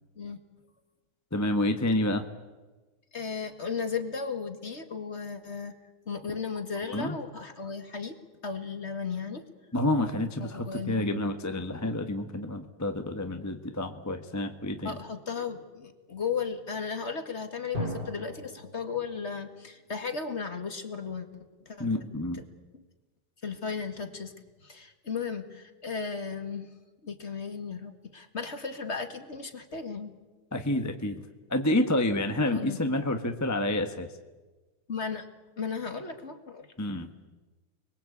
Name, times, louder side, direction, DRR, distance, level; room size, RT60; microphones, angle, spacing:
voice 1, 1.3-2.2 6.8-7.2 9.7-15.0 21.8-22.4 30.5-31.2 31.5-34.1 36.8-37.1, left 1 dB, 10° left, 6 dB, 1.0 m, -29 dB
voice 2, 3.1-5.7 6.1-9.5 10.4-11.2 14.8-21.3 21.7-22.1 22.3-22.4 23.4-24.3 24.6-26.7 27.0-30.1 32.5-32.8 34.9-35.3 35.6-36.7, left 5 dB, 30° left, 7 dB, 2.1 m, -35 dB
Drum, 17.7-20.5, equal, 50° right, 6.7 m, -39 dB
29.5 x 21.5 x 8.6 m, 1.2 s
omnidirectional pair, 2.3 m